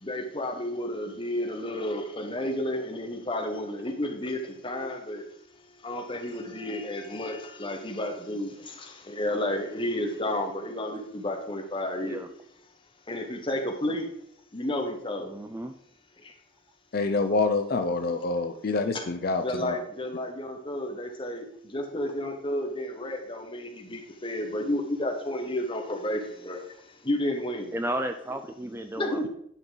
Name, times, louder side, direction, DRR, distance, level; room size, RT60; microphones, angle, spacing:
voice 1, 0.0-5.3 5.8-12.2 13.1-14.1 14.5-15.3 16.2-16.3 18.9-19.0 19.4-26.6 27.0-27.7 29.0-29.3, left 1 dB, 25° left, 3 dB, 1.2 m, -31 dB
voice 2, 15.2-15.7 27.7-29.3, right 1 dB, 10° right, 7 dB, 0.4 m, -33 dB
voice 3, 16.9-19.8, left 3 dB, 50° left, 7 dB, 0.5 m, -26 dB
10.5 x 5.5 x 3.9 m, 0.69 s
head